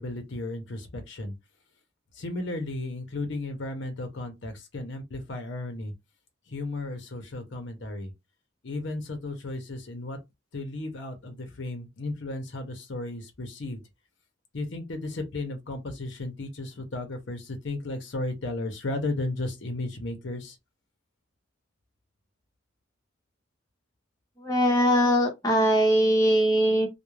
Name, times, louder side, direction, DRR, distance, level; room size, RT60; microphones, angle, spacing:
voice 1, 0.0-1.3 2.1-5.9 6.5-8.1 8.6-10.2 10.5-13.8 14.5-20.6, left 2 dB, 65° left, 0.7 m, -34 dB
voice 2, 24.4-26.9, equal, 20° left, 0.8 m, -21 dB
2.3 x 2.1 x 3.1 m
head